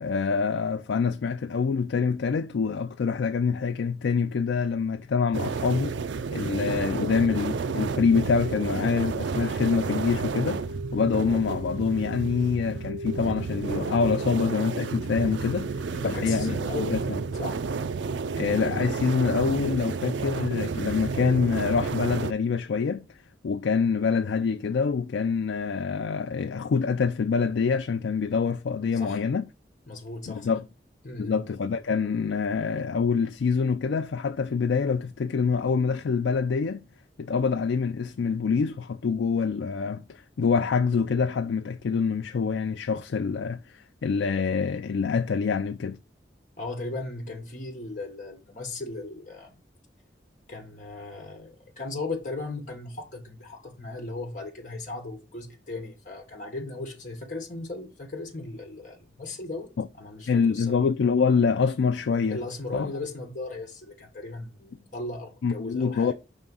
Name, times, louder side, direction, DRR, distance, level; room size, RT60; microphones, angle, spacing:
voice 1, 0.0-6.0 6.3-10.6 10.9-15.7 16.0-17.0 18.4-23.2 23.4-29.4 30.3-30.6 31.2-36.8 37.2-46.0 59.8-59.9 60.3-62.4 62.7-62.9 65.4-66.1, left 5 dB, 90° left, 0.4 m, -26 dB
sound 1, 5.3-22.3, right 4 dB, 90° right, 0.4 m, -31 dB
voice 2, 15.9-17.6 28.9-29.2 29.9-30.6 31.0-31.4 46.6-49.6 50.5-60.8 62.3-66.1, left 2 dB, 45° left, 1.4 m, -37 dB
5.5 x 3.6 x 5.3 m
head